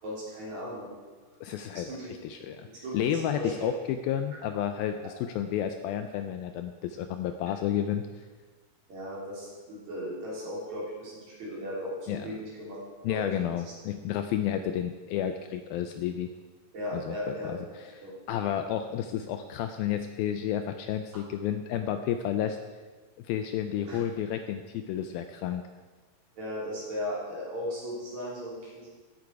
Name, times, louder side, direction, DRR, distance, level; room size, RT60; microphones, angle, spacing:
voice 1, 0.0-0.9 1.7-2.1 2.8-3.7 8.9-12.8 13.1-13.3 16.7-17.7 18.0-18.1 23.9-24.0 26.3-28.9, equal, 45° right, -6 dB, 4.7 m, -37 dB
voice 2, 1.4-1.9 2.2-8.3 12.1-12.3 13.0-16.3 16.9-22.6 23.2-25.6, left 10 dB, 80° left, 7 dB, 2.2 m, -31 dB
14.5 x 9.0 x 4.7 m, 1.4 s
omnidirectional pair, 4.6 m